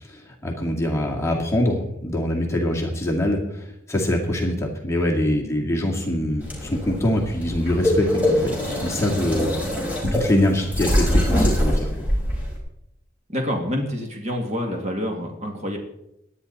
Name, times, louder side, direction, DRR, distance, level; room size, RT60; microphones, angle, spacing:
voice 1, 0.1-9.5 9.8-9.9 10.1-12.1, left 1 dB, 15° left, -1 dB, 2.1 m, -24 dB
sound 1, 6.4-12.6, left 1 dB, 10° right, 4.9 m, -23 dB
voice 2, 13.3-15.8, equal, 35° right, 1 dB, 2.3 m, -27 dB
18.0 x 11.5 x 4.2 m, 0.82 s
head